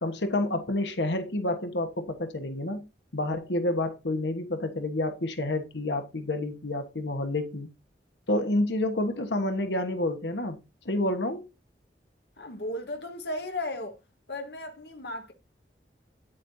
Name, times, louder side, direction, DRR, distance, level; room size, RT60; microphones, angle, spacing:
voice 1, 0.0-2.8 3.1-7.7 8.3-10.6 10.8-11.5, left 1 dB, 85° left, 1.4 m, -29 dB
voice 2, 12.4-14.0 14.3-15.3, left 1 dB, 70° left, 1.3 m, -35 dB
8.7 x 8.4 x 2.7 m
head